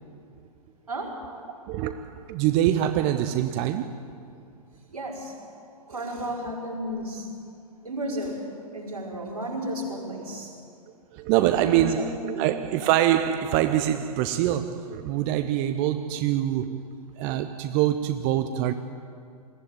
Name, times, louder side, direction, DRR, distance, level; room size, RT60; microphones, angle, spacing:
voice 1, 0.9-1.2 4.9-5.3 5.9-7.3 7.8-8.4 8.7-10.5 11.5-12.4, right 1 dB, 80° right, 5.4 m, -33 dB
voice 2, 1.7-4.1 11.1-16.8 17.2-18.7, right 12 dB, 30° right, 0.7 m, -24 dB
21.5 x 15.5 x 9.1 m
figure-of-eight pair, 110°, 19 cm